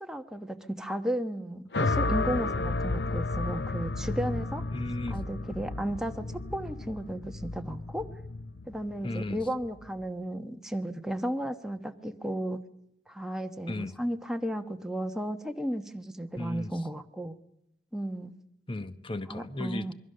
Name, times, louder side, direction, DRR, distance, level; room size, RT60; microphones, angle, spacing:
voice 1, 0.0-4.6 5.1-6.2 6.5-8.1 8.7-12.6 13.1-17.3 17.9-18.3 19.3-19.9, equal, 5° right, 5 dB, 1.1 m, -34 dB
sound 1, 1.7-10.0, left 3 dB, 70° left, 0.8 m, -32 dB
voice 2, 4.7-5.2 9.0-9.4 13.7-13.9 16.4-16.8 18.7-19.9, left 2 dB, 30° left, 11 dB, 1.1 m, -35 dB
27.0 x 22.5 x 6.7 m, 0.80 s
head